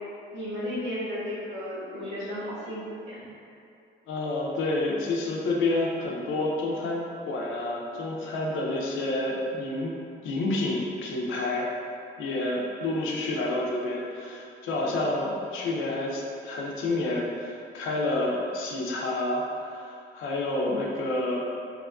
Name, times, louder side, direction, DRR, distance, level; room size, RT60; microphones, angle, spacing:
voice 1, 0.3-3.2, left 1 dB, 85° right, -10 dB, 1.3 m, -34 dB
voice 2, 4.1-9.9 10.2-11.7 12.2-21.4, left 2 dB, 85° left, -2 dB, 0.5 m, -29 dB
3.4 x 2.4 x 2.2 m, 2.5 s
cardioid pair, 90°, 20 cm